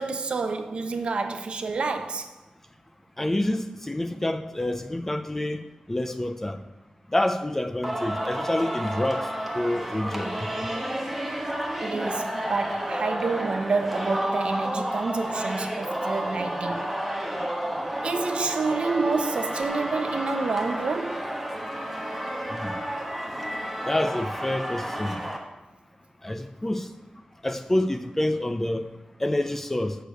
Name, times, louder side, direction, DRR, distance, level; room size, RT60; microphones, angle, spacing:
voice 1, 0.0-2.3 11.8-17.0 18.0-21.3, right 4 dB, 55° right, 0.8 m, -28 dB
voice 2, 3.2-5.6 5.9-6.6 7.1-9.3 9.5-10.3 22.5-22.7 23.9-25.2 26.2-26.9 27.4-28.9 29.2-30.0, left 1 dB, 15° left, 0.5 m, -27 dB
Singing, 7.8-25.4, right 1 dB, 5° right, 1.2 m, -31 dB
6.7 x 6.7 x 7.7 m
wide cardioid pair, 160°, 2 cm